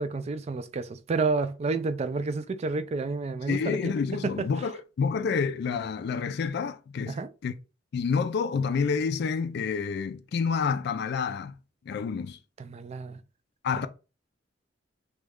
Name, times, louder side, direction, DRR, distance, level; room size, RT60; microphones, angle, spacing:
voice 1, 0.0-3.9 7.1-7.3 12.6-13.2, right 3 dB, 35° right, 0.3 m, -30 dB
voice 2, 3.5-7.2 7.4-7.5 7.9-11.5 11.9-12.4 13.6-13.9, left 5 dB, 60° left, 0.3 m, -28 dB
3.1 x 2.3 x 3.5 m
head